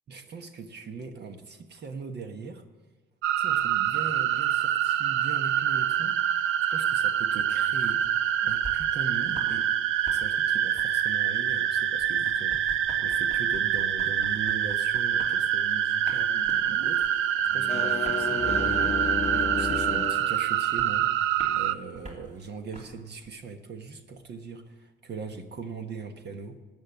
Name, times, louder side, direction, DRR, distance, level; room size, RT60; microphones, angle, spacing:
voice 1, 0.1-2.6 3.4-9.7 10.1-21.1 21.5-26.6, right 4 dB, 55° right, 7 dB, 1.3 m, -40 dB
sound 1, 3.2-21.7, right 10 dB, 85° right, 0.5 m, -26 dB
sound 2, 7.4-9.6 9.9-23.3, right 1 dB, 35° right, 3.2 m, -48 dB
sound 3, 17.5-20.3, left 6 dB, 30° left, 0.6 m, -32 dB
13.0 x 9.0 x 7.9 m, 1.3 s
cardioid pair, 90°, 20 cm